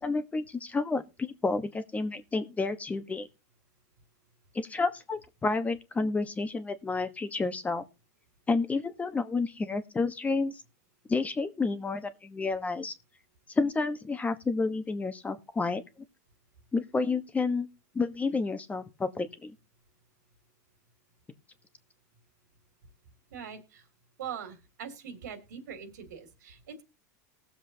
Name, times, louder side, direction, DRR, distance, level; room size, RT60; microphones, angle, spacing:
voice 1, 0.0-3.3 4.5-7.8 8.5-10.6 11.1-12.9 13.5-15.8 16.7-17.7 17.9-19.5, left 3 dB, 15° left, 1.0 m, -30 dB
voice 2, 23.3-23.9 24.2-26.8, right 7 dB, 90° right, 2.9 m, -42 dB
19.5 x 7.3 x 2.8 m
supercardioid pair, 115°, 9 cm